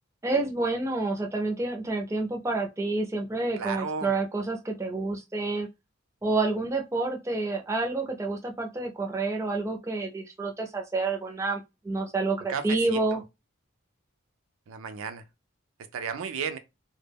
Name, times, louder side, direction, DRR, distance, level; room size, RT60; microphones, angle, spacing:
voice 1, 0.2-5.7 6.2-13.2, right 3 dB, 15° right, 0.4 m, -29 dB
voice 2, 3.6-4.1 12.5-13.2 14.7-15.2 15.9-16.6, right 6 dB, 85° right, 0.4 m, -34 dB
2.2 x 2.1 x 3.4 m
head